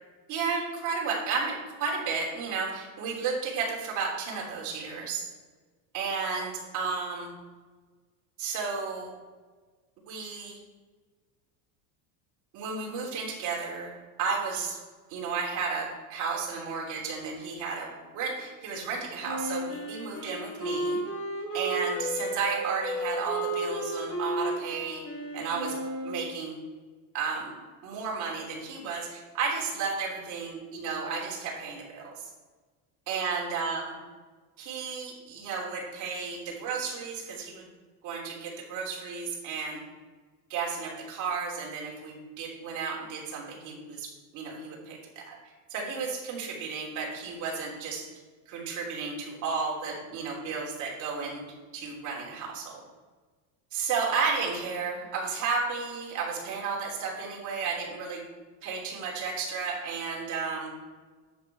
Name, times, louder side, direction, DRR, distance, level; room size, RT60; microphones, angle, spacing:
voice 1, 0.3-5.2 5.9-7.3 8.4-9.1 10.1-10.6 12.5-13.9 14.2-14.8 15.1-21.0 21.5-25.0 25.3-25.8 26.0-26.5 27.1-27.5 27.8-32.3 33.1-34.0 34.6-37.6 38.0-39.8 40.5-48.0 48.5-51.4 51.7-52.8 53.7-58.2 58.6-60.7, right 5 dB, 45° right, -2 dB, 3.1 m, -33 dB
Wind instrument woodwind instrument, 19.2-26.3, right 1 dB, 35° left, 3.5 m, -33 dB
10.5 x 7.2 x 4.8 m, 1.4 s
cardioid pair, 155°, 40 cm